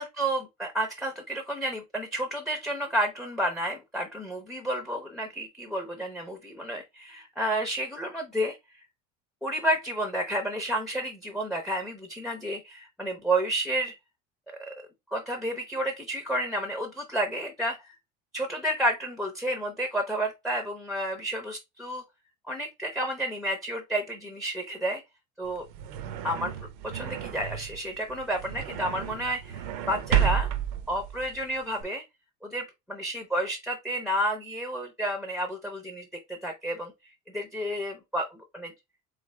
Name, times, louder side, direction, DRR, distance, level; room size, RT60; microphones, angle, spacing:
voice 1, 0.0-8.8 9.4-13.9 14.7-14.8 15.1-17.9 18.3-22.0 22.5-25.0 25.4-25.6 26.2-26.5 26.9-30.5 30.9-32.0 32.4-36.9 37.3-38.7, right 1 dB, ahead, 0.5 m, -31 dB
sound 1, 25.4-31.8, right 10 dB, 85° right, 0.7 m, -31 dB
3.8 x 3.2 x 3.7 m
cardioid pair, 175°, 20 cm